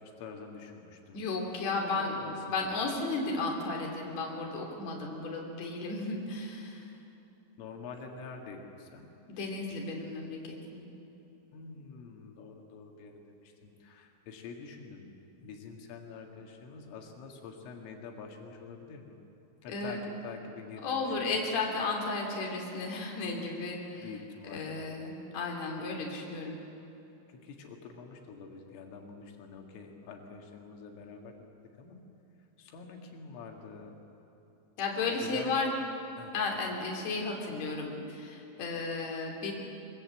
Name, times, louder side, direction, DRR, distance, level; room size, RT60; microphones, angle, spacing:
voice 1, 0.0-1.2 1.8-2.6 7.6-9.1 11.5-19.2 19.6-21.3 24.0-24.8 27.3-31.3 31.6-32.0 32.6-34.0 35.2-35.7 36.2-36.3, left 5 dB, 85° left, 2 dB, 4.6 m, -46 dB
voice 2, 1.1-2.2 2.4-6.9 9.3-10.8 19.7-20.1 20.8-24.1 24.5-26.6 34.8-35.7 36.3-39.5, left 3 dB, 40° left, 0 dB, 3.9 m, -34 dB
24.0 x 22.5 x 8.5 m, 2.9 s
omnidirectional pair, 5.6 m